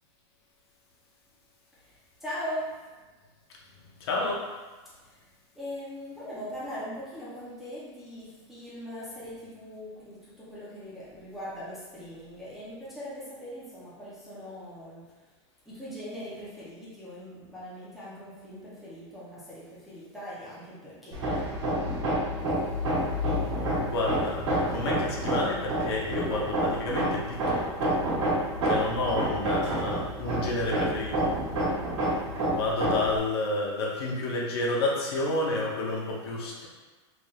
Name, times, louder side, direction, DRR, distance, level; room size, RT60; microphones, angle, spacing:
voice 1, 2.2-3.0 4.9-5.2 5.6-15.0 15.7-21.2, equal, ahead, -11 dB, 0.7 m, -40 dB
voice 2, 4.0-4.5 23.3-28.0 28.6-31.3 32.5-36.7, left 2 dB, 55° left, -2 dB, 0.8 m, -30 dB
Hammer, 21.1-33.2, right 1 dB, 75° right, 1.4 m, -28 dB
4.0 x 3.3 x 2.4 m, 1.3 s
supercardioid pair, 170°, 15 cm